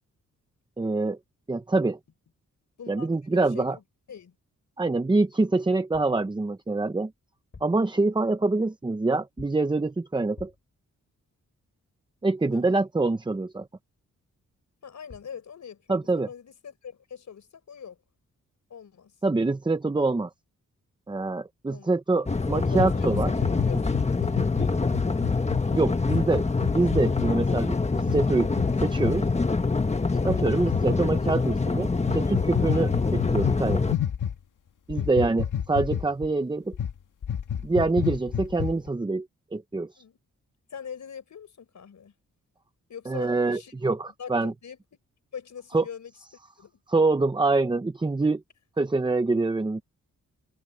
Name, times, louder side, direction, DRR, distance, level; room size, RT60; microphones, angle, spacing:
voice 1, 0.8-1.2 1.5-2.0 2.9-3.8 4.8-7.1 7.6-10.5 12.2-13.7 15.9-16.3 19.2-20.3 21.1-23.3 25.7-26.4 26.7-28.5 28.8-29.3 30.2-33.8 34.9-36.8 37.6-39.3 39.5-40.0 43.1-44.5 45.7-45.8 46.9-48.4 48.8-49.8, right 3 dB, 15° right, 0.7 m, -25 dB
voice 2, 2.8-4.3 12.5-12.8 14.8-18.0 18.7-19.2 21.7-21.9 22.5-25.0 25.6-25.9 34.9-35.3 40.0-40.2 40.7-42.1 42.9-43.7 44.2-44.8 45.3-46.1 46.6-46.8, left 7 dB, 65° left, 4.7 m, -43 dB
sound 1, 5.9-6.3 7.4-7.9 9.4-9.7 10.4-10.8 14.8-14.9 15.1-15.4, left 4 dB, 40° left, 6.0 m, -49 dB
sound 2, 22.3-34.0, left 3 dB, 20° left, 1.3 m, -25 dB
sound 3, 22.8-25.6 26.1-26.2 26.6-27.3 28.0-28.2 28.5-28.7 29.0-29.2 30.2-30.8 32.0-34.3 34.9-36.3 36.7-36.9 37.2-38.9, left 9 dB, 80° left, 1.7 m, -29 dB
wide cardioid pair, 125°, 31 cm